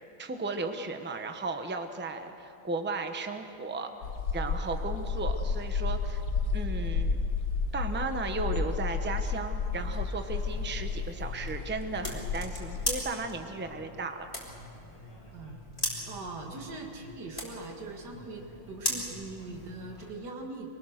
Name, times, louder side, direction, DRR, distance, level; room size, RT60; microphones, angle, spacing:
voice 1, 0.2-3.9 4.3-6.2 6.5-7.2 7.7-14.3, right 3 dB, 10° right, 6 dB, 0.5 m, -35 dB
sound 1, 4.0-13.1, left 4 dB, 70° left, 1.9 m, -32 dB
sound 2, 9.7-20.1, left 1 dB, 15° left, 3.6 m, -40 dB
voice 2, 16.1-20.7, right 3 dB, 55° right, 1 dB, 2.6 m, -41 dB
24.5 x 19.0 x 6.6 m, 2.7 s
omnidirectional pair, 2.2 m